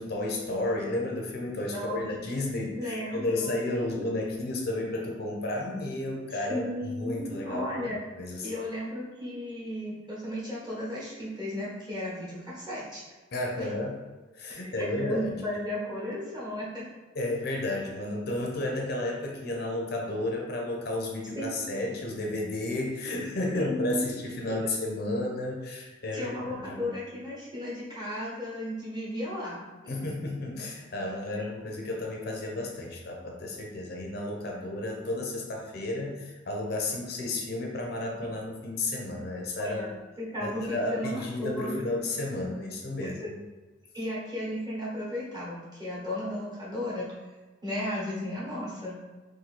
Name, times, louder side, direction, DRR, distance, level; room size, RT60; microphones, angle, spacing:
voice 1, 0.0-7.9 8.2-8.5 13.3-13.9 14.3-15.4 17.1-26.9 29.9-39.9 40.4-43.4, left 2 dB, 55° left, 0 dB, 0.5 m, -32 dB
voice 2, 1.7-2.4 2.8-4.1 6.3-8.0 8.4-13.0 13.6-13.7 14.6-16.9 21.3-21.5 23.5-24.1 26.1-29.6 39.6-39.9 40.2-41.8 43.0-43.3 43.9-47.1 47.6-49.2, left 1 dB, 20° right, -7 dB, 1.1 m, -34 dB
2.8 x 2.6 x 4.1 m, 1.2 s
head